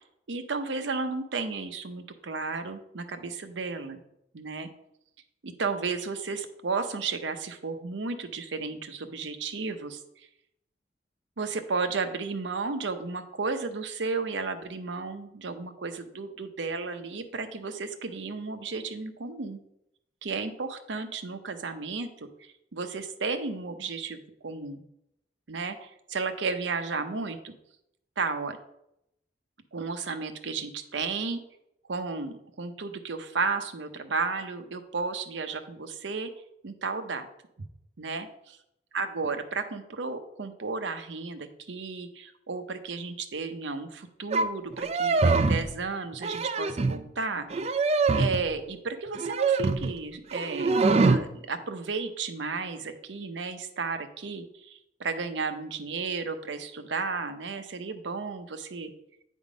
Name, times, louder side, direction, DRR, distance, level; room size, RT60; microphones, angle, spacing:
voice 1, 0.3-4.0 4.3-4.7 5.4-10.0 11.4-19.6 20.2-24.8 25.5-27.5 28.2-28.6 29.7-31.4 31.9-36.3 36.6-37.3 38.0-38.6 38.9-47.8 48.2-50.7 51.0-58.9, right 4 dB, 85° right, 8 dB, 0.7 m, -33 dB
sound 1, 44.3-44.5 44.7-45.7 46.1-47.0 47.5-48.4 49.1-49.9 50.3-51.2, right 3 dB, 35° right, 0.4 m, -24 dB
9.2 x 3.6 x 4.9 m, 0.80 s
head